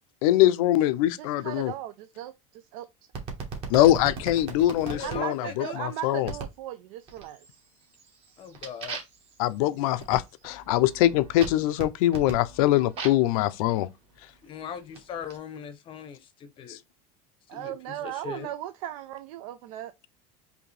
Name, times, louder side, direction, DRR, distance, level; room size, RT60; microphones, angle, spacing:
voice 1, 0.2-1.7 3.7-6.3 9.4-13.9 16.7-16.8, left 14 dB, 85° left, 0.5 m, -23 dB
voice 2, 1.1-2.9 5.0-7.5 17.5-20.1, right 13 dB, 85° right, 0.4 m, -37 dB
sound 1, 3.1-5.2 6.3-6.6 7.1-7.6 7.9-13.3 14.1-15.4, right 4 dB, 35° right, 1.1 m, -39 dB
voice 3, 4.8-5.8 8.4-9.0 14.4-16.8 17.5-18.5, left 7 dB, 30° left, 0.6 m, -40 dB
4.9 x 2.7 x 3.2 m
cardioid pair, 165°, 18 cm